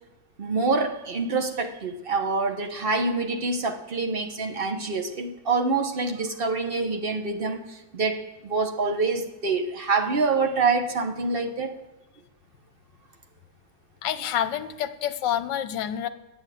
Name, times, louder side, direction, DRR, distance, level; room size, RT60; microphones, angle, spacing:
voice 1, 0.4-11.7, right 3 dB, 40° right, 4 dB, 0.9 m, -26 dB
voice 2, 14.0-16.1, left 10 dB, 70° left, 12 dB, 1.3 m, -28 dB
10.5 x 9.1 x 9.1 m, 1.0 s
omnidirectional pair, 2.1 m